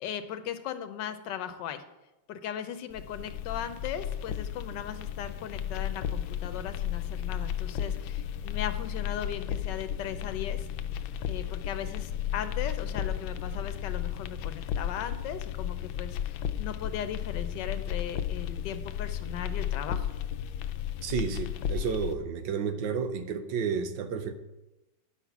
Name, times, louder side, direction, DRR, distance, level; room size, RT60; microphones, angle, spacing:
voice 1, 0.0-1.8 2.3-10.7 11.3-20.1, left 9 dB, 70° left, 9 dB, 1.3 m, -38 dB
sound 1, 2.9-22.1, left 9 dB, 90° left, 1.3 m, -34 dB
voice 2, 21.0-24.3, right 6 dB, 75° right, 9 dB, 1.5 m, -31 dB
9.8 x 5.9 x 5.9 m, 0.98 s
omnidirectional pair, 2.1 m